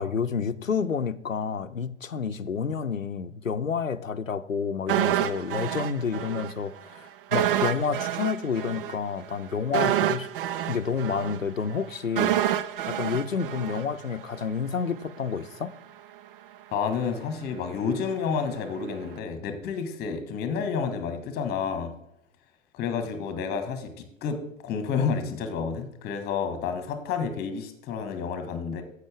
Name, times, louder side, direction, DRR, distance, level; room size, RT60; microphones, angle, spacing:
voice 1, 0.0-10.3 10.7-12.4 12.9-15.7, left 6 dB, 85° left, 13 dB, 0.7 m, -29 dB
sound 1, 4.9-6.5 6.8-6.9 7.3-14.4 14.7-14.8, right 12 dB, 45° right, 0.6 m, -28 dB
voice 2, 16.7-21.9 22.7-28.8, left 6 dB, 25° left, 9 dB, 1.5 m, -30 dB
10.5 x 8.1 x 3.5 m, 0.78 s
figure-of-eight pair, 105°, 39 cm